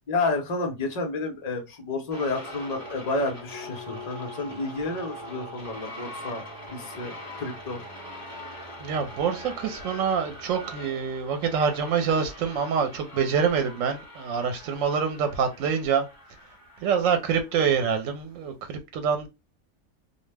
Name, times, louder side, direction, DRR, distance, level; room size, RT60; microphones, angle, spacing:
voice 1, 0.1-6.4 6.7-7.8, left 3 dB, 45° left, 0.6 m, -30 dB
sound 1, 2.1-18.3, left 1 dB, 15° left, 1.2 m, -42 dB
voice 2, 8.8-16.1 16.8-19.3, right 6 dB, 85° right, 0.9 m, -26 dB
2.3 x 2.0 x 3.2 m
omnidirectional pair, 1.3 m